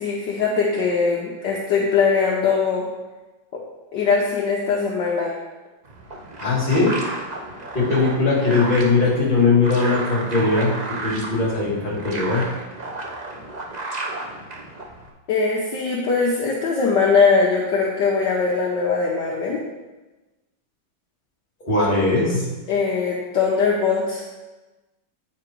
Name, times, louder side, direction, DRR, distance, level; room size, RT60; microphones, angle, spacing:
voice 1, 0.0-2.9 3.5-3.6 3.9-5.4 15.3-19.6 22.7-24.3, left 5 dB, 65° left, -3 dB, 1.4 m, -21 dB
sound 1, 5.8-15.1, right 2 dB, 70° right, 0.4 m, -33 dB
voice 2, 6.4-7.0 7.7-12.4 21.6-22.5, left 3 dB, 25° left, -5 dB, 2.2 m, -20 dB
8.5 x 5.0 x 4.5 m, 1.2 s
omnidirectional pair, 2.2 m